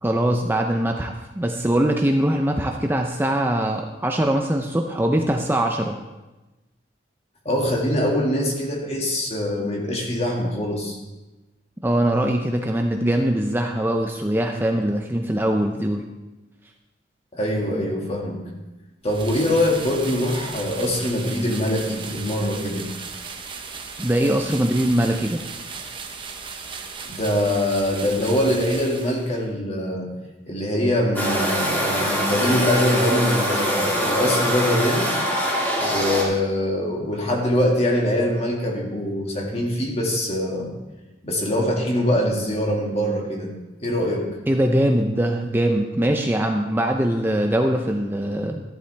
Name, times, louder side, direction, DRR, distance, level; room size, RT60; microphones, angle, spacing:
voice 1, 0.0-6.0 11.8-16.0 24.0-25.4 44.5-48.6, right 1 dB, 10° right, 3 dB, 0.6 m, -22 dB
voice 2, 7.5-11.0 17.3-18.4 19.0-22.9 27.1-30.1 30.5-35.1 35.8-40.7 41.2-43.5 43.8-44.3, left 1 dB, 35° left, 0 dB, 2.1 m, -23 dB
sound 1, 19.0-29.4, right 5 dB, 30° right, 1.0 m, -36 dB
sound 2, 31.1-36.2, equal, 10° left, 2.1 m, -23 dB
14.0 x 11.5 x 3.4 m, 1.1 s
head